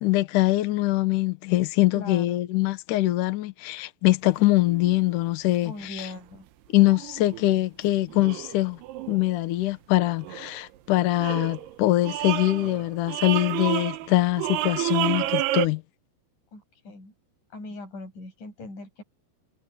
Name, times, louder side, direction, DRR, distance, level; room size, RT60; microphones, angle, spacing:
voice 1, 0.0-6.1 6.7-8.8 9.1-15.8, left 17 dB, 85° left, 1.8 m, -23 dB
voice 2, 1.9-2.5 5.6-6.5 16.5-17.1 17.5-19.0, left 2 dB, 45° left, 8.3 m, -40 dB
sound 1, 4.3-4.4 4.7-5.1 6.0-6.2 6.8-7.6 8.1-9.4 10.2-10.6 11.2-11.8 12.0-15.7, right 15 dB, 75° right, 2.7 m, -30 dB
omnidirectional pair, 5.3 m